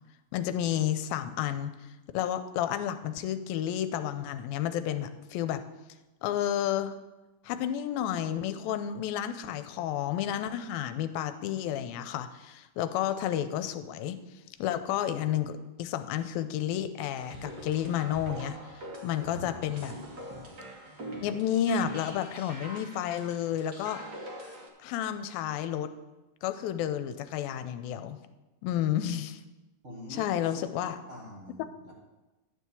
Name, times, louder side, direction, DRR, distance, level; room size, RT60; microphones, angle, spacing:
voice 1, 0.3-1.7 2.1-5.6 6.2-7.0 7.4-14.2 14.6-18.6 19.0-20.0 21.2-24.0 24.8-25.9 26.4-28.2 28.6-29.4 30.1-31.0, left 10 dB, 85° left, 10 dB, 2.4 m, -31 dB
sound 1, 17.2-24.7, right 1 dB, 55° right, 1.1 m, -43 dB
voice 2, 19.3-19.6 29.8-31.9, left 1 dB, 70° right, -5 dB, 0.7 m, -46 dB
11.5 x 4.6 x 8.3 m, 1.1 s
omnidirectional pair, 4.2 m